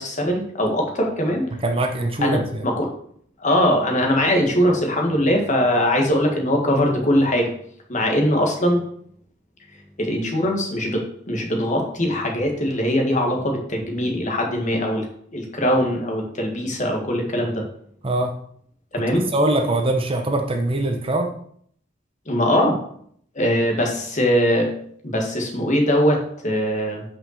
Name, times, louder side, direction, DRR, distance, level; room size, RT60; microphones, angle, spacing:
voice 1, 0.0-1.4 2.2-2.9 3.4-7.5 7.9-8.8 10.0-15.0 15.3-17.6 18.9-19.2 22.3-22.8 23.3-24.7 25.0-27.0, equal, 40° left, 1 dB, 1.7 m, -21 dB
voice 2, 1.6-2.6 18.0-18.3 19.1-21.3, right 1 dB, 30° right, 4 dB, 0.8 m, -22 dB
5.7 x 5.5 x 6.6 m, 0.64 s
head